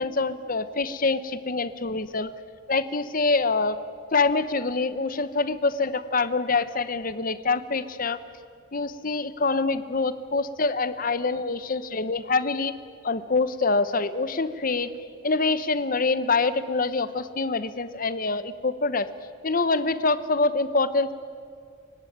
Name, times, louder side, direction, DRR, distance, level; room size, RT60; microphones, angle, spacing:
voice 1, 0.0-2.3 2.7-3.8 4.1-8.2 8.7-12.7 13.0-14.9 15.2-19.1 19.4-21.1, left 3 dB, 40° left, 14 dB, 1.0 m, -25 dB
28.5 x 16.5 x 9.4 m, 2.3 s
head